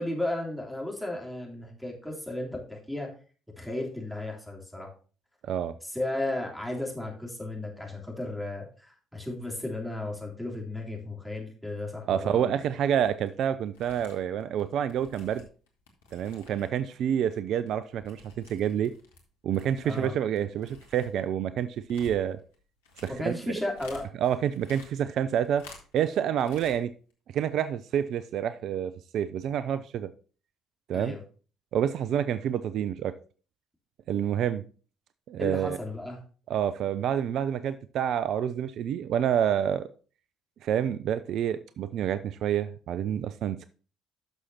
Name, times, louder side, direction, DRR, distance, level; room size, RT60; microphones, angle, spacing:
voice 1, 0.0-3.1 3.6-4.9 5.8-12.5 19.8-20.1 23.1-24.1 30.9-31.2 35.4-36.2, left 1 dB, ahead, 0 dB, 3.3 m, -34 dB
voice 2, 5.4-5.7 12.0-15.5 16.1-18.9 19.4-22.4 23.0-23.3 24.2-25.6 25.9-26.9 27.3-30.1 30.9-31.2 31.7-33.1 34.1-34.6 35.3-35.8 36.5-39.9 40.6-43.6, right 9 dB, 60° right, 13 dB, 0.4 m, -28 dB
sound 1, 13.0-13.3 13.6-16.9 17.1-19.2 19.5-24.1 24.4-26.1 26.4-26.8 27.1-27.2, left 3 dB, 80° left, 1.4 m, -52 dB
11.5 x 6.3 x 2.8 m, 0.38 s
hypercardioid pair, 50°, 0 cm